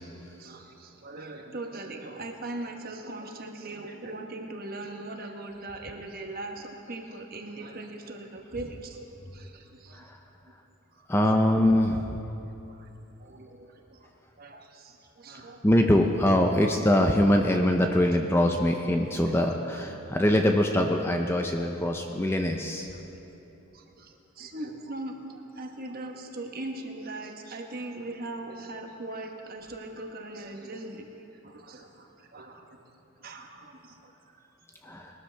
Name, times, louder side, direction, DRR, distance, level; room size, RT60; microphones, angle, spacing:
voice 1, 0.4-10.1 10.9-11.4 12.7-12.9 13.2-14.1 14.4-15.6 19.2-19.5 22.9-23.0 23.7-31.1 31.4-32.8 33.2-34.5, right 2 dB, 40° right, 3 dB, 1.1 m, -40 dB
voice 2, 11.1-12.1 15.6-22.9 34.8-35.1, left 1 dB, 10° left, 3 dB, 0.5 m, -23 dB
21.0 x 12.5 x 3.4 m, 3.0 s
head